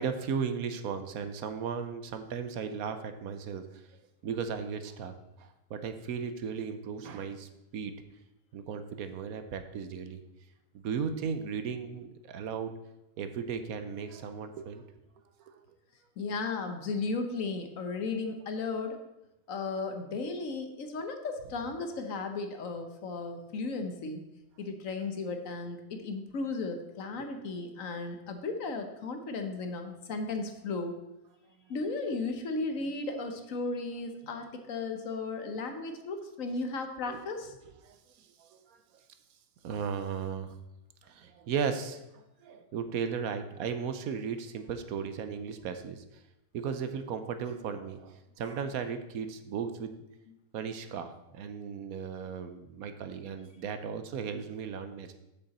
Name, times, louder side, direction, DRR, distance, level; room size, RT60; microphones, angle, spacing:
voice 1, 0.0-3.6 4.2-7.9 8.5-10.2 10.7-12.7 13.2-14.8 15.5-15.6 27.2-27.3 37.1-37.2 37.8-38.8 39.6-40.6 41.0-46.0 46.5-49.9 50.5-55.1, right 6 dB, 70° right, 8 dB, 1.1 m, -36 dB
voice 2, 16.2-19.0 19.5-24.2 24.6-30.9 31.7-37.5, left 3 dB, 60° left, 6 dB, 1.2 m, -35 dB
7.9 x 6.8 x 4.1 m, 0.92 s
omnidirectional pair, 1.6 m